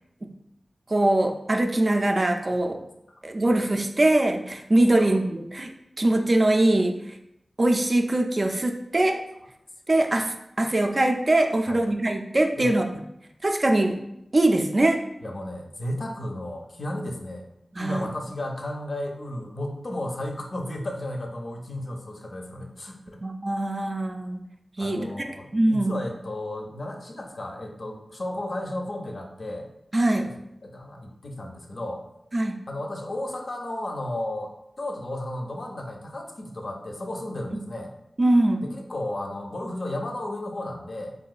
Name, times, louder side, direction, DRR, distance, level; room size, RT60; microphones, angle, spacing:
voice 1, 0.9-2.8 3.2-5.7 6.0-7.2 7.6-9.2 9.9-12.8 13.4-14.0 14.3-15.0 17.7-18.1 23.2-24.4 24.8-25.3 25.5-26.0 29.9-30.3 32.3-32.6 37.5-37.6 38.2-38.6, right 1 dB, 45° right, 4 dB, 0.3 m, -22 dB
voice 2, 15.2-17.4 17.8-23.2 24.8-29.7 30.1-30.2 30.6-32.0 32.7-34.5 34.8-37.9 38.6-41.2, left 1 dB, 60° left, 1 dB, 0.5 m, -33 dB
3.6 x 2.4 x 2.4 m, 0.81 s
wide cardioid pair, 65°, 0 cm